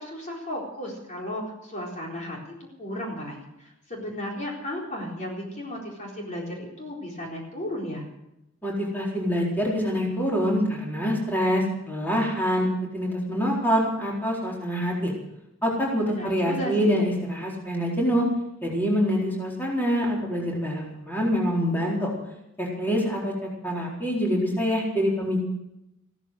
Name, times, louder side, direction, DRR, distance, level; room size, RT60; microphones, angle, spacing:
voice 1, 0.0-2.4 2.8-8.0 16.0-17.0, left 1 dB, 40° left, -2 dB, 4.1 m, -34 dB
voice 2, 8.6-12.7 12.9-15.1 15.6-18.3 18.6-22.1 22.6-25.4, equal, 10° left, -3 dB, 4.2 m, -25 dB
15.5 x 13.5 x 6.3 m, 0.86 s
head